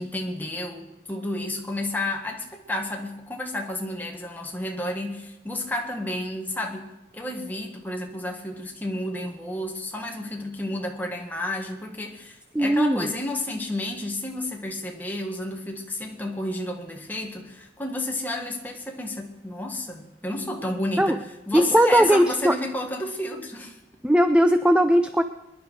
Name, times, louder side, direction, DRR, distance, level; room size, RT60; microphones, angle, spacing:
voice 1, 0.0-6.9 7.1-21.2 21.5-23.8, left 1 dB, 10° left, 1 dB, 1.8 m, -31 dB
voice 2, 12.5-13.1 21.0-21.2 21.5-22.6 24.0-25.2, equal, 5° right, 9 dB, 0.4 m, -19 dB
23.0 x 11.0 x 4.7 m, 0.97 s
head